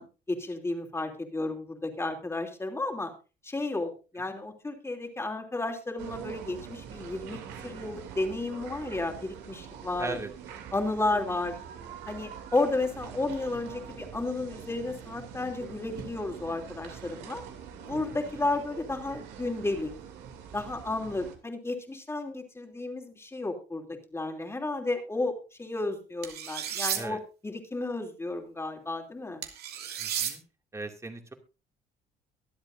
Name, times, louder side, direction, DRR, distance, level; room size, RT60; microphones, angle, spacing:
voice 1, 0.0-3.1 3.4-7.4 7.6-10.2 10.7-11.5 12.1-17.4 17.8-19.9 20.5-23.8 24.1-25.3 25.6-29.4, left 2 dB, 15° left, 4 dB, 2.9 m, -32 dB
sound 1, 6.0-21.4, right 8 dB, 90° right, 2.7 m, -44 dB
voice 2, 10.0-10.3 18.3-18.4 26.9-27.2 30.0-30.4 30.7-31.3, right 3 dB, 15° right, 4 dB, 2.3 m, -38 dB
sound 2, 26.2-27.0 29.4-30.3, right 9 dB, 70° right, 2.6 m, -32 dB
24.0 x 8.0 x 2.6 m, 0.32 s
cardioid pair, 110°, 17 cm